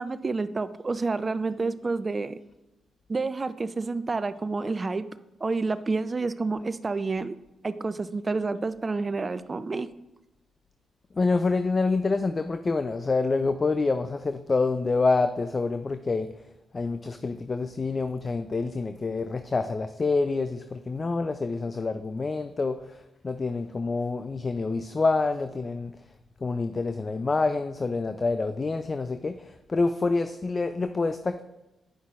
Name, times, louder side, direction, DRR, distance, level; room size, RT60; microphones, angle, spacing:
voice 1, 0.0-2.4 3.1-5.1 5.4-7.4 7.6-9.9, right 3 dB, 40° right, 13 dB, 0.5 m, -29 dB
voice 2, 11.2-16.3 16.7-23.0 23.2-25.9 26.4-31.4, left 3 dB, 40° left, 10 dB, 0.4 m, -27 dB
10.0 x 5.5 x 2.4 m, 0.96 s
hypercardioid pair, 45°, 0 cm